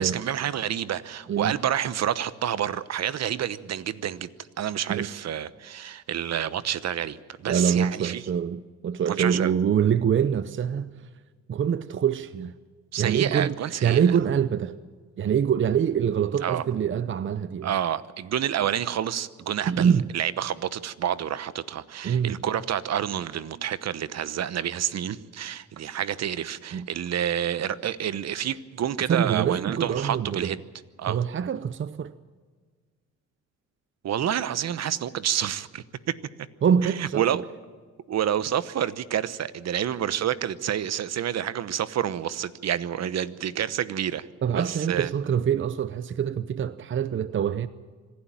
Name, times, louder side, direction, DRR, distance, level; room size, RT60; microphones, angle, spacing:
voice 1, 0.0-4.3 4.6-8.2 9.1-9.5 12.9-14.0 16.4-16.6 17.6-30.6 31.0-31.2 34.0-36.2 36.8-37.4 38.1-44.3 44.5-45.1, right 10 dB, 60° right, 1.0 m, -28 dB
voice 2, 7.5-10.9 11.5-12.5 13.0-13.6 13.8-14.7 15.2-17.7 19.7-20.1 22.0-22.4 26.7-26.9 29.1-30.5 31.1-32.1 36.6-37.4 44.4-47.7, right 8 dB, 40° right, 0.7 m, -25 dB
25.5 x 11.5 x 9.0 m
cardioid pair, 90°, 30 cm